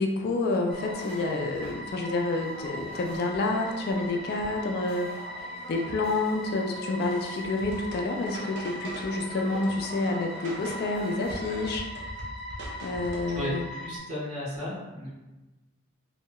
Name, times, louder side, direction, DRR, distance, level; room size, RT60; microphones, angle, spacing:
voice 1, 0.0-5.1 5.4-11.8 12.8-13.7, left 2 dB, 50° left, 2 dB, 0.3 m, -29 dB
sound 1, 0.7-14.0, equal, ahead, 0.5 m, -40 dB
sound 2, 0.7-11.8, right 1 dB, 30° right, 0.9 m, -45 dB
sound 3, 7.4-9.2 9.6-10.9 11.3-13.5, right 1 dB, 55° right, 0.5 m, -42 dB
voice 2, 13.3-15.1, left 1 dB, 75° right, -8 dB, 1.1 m, -34 dB
3.0 x 2.7 x 2.2 m, 1.1 s
head